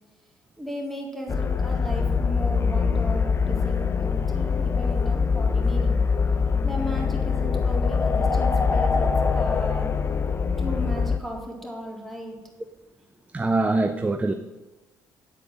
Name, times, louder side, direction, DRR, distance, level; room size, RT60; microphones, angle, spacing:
voice 1, 0.6-6.0 6.6-9.9 10.6-12.4, equal, ahead, 0 dB, 3.7 m, -35 dB
sound 1, 1.3-11.2, left 5 dB, 30° left, 1.0 m, -23 dB
voice 2, 13.3-14.3, right 2 dB, 15° right, 9 dB, 0.7 m, -23 dB
9.0 x 8.3 x 7.7 m, 1.1 s
figure-of-eight pair, 45°, 9 cm